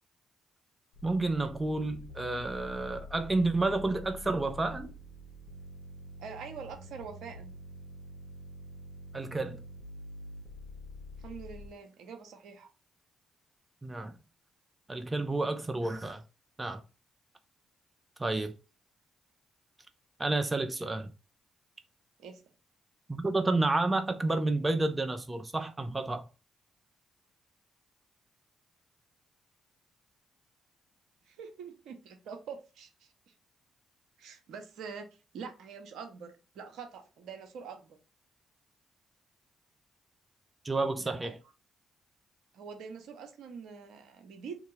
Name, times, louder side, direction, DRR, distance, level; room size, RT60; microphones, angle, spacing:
sound 1, 0.9-11.7, left 1 dB, 65° left, 1.5 m, -47 dB
voice 1, 1.0-4.9 9.1-9.6 13.8-14.1 14.9-16.2 16.6-16.8 18.2-18.5 20.2-21.1 23.1-26.3 40.6-41.3, right 2 dB, 25° right, 0.5 m, -30 dB
voice 2, 6.2-7.6 11.2-12.7 22.2-22.4 31.3-32.9 34.2-35.1 35.3-38.0 41.0-41.3 42.5-44.6, right 6 dB, 70° right, 0.7 m, -45 dB
2.9 x 2.7 x 3.9 m
hypercardioid pair, 40°, 0 cm